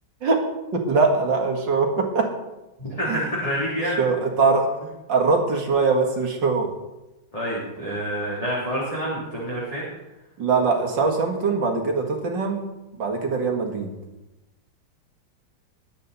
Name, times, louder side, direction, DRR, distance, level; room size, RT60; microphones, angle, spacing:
voice 1, 0.7-2.3 3.1-3.3 3.9-4.7 5.1-6.7 10.4-12.7 12.9-13.9, right 4 dB, 60° right, 2 dB, 2.7 m, -22 dB
voice 2, 2.8-4.0 7.3-9.9, equal, 15° left, -6 dB, 3.2 m, -27 dB
21.5 x 9.0 x 4.1 m, 1.0 s
omnidirectional pair, 2.3 m